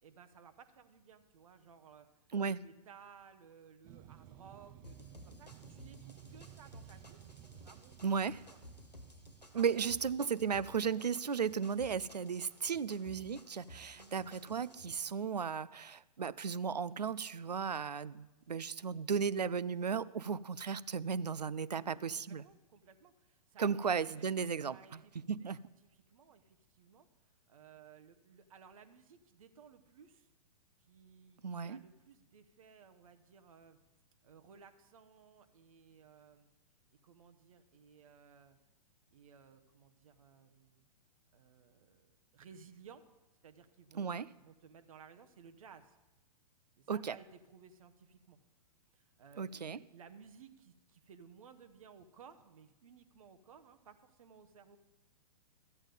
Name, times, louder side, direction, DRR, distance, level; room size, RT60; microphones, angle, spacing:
voice 1, 0.0-2.1 2.4-7.2 7.6-8.1 8.5-8.6 9.5-9.9 13.9-14.2 21.7-23.7 24.1-24.3 24.7-25.5 25.9-27.1 27.5-30.3 30.8-33.8 34.2-36.5 37.0-38.6 39.1-40.9 41.3-43.0 43.4-46.0 46.8-48.4 48.9-54.8, right 6 dB, 55° right, 8 dB, 1.0 m, -58 dB
sound 1, 3.8-9.9, right 12 dB, 30° right, 0.6 m, -56 dB
sound 2, 4.8-14.9, left 1 dB, 90° left, 1.4 m, -56 dB
voice 2, 8.0-8.4 9.5-22.4 23.6-25.0 25.3-25.6 31.4-31.8 44.0-44.3 46.9-47.1 49.4-49.8, right 6 dB, 80° right, 19 dB, 0.5 m, -35 dB
13.0 x 8.8 x 5.3 m, 1.0 s
figure-of-eight pair, 110°, 21 cm